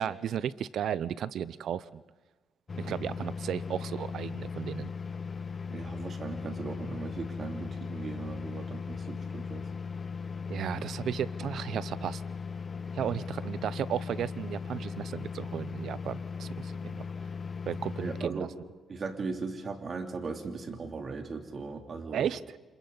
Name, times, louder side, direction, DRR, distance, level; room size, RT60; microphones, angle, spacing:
voice 1, 0.0-2.0 2.8-4.9 10.5-12.2 12.9-17.1 17.7-18.5 22.1-22.6, right 9 dB, 75° right, 17 dB, 0.7 m, -34 dB
sound 1, 2.7-18.3, left 5 dB, 40° left, 0.7 m, -38 dB
voice 2, 5.7-9.7 13.0-13.1 18.0-18.5 18.9-22.3, right 4 dB, 45° right, 3 dB, 3.0 m, -38 dB
29.5 x 27.0 x 4.0 m, 1.3 s
cardioid pair, 85°, 0 cm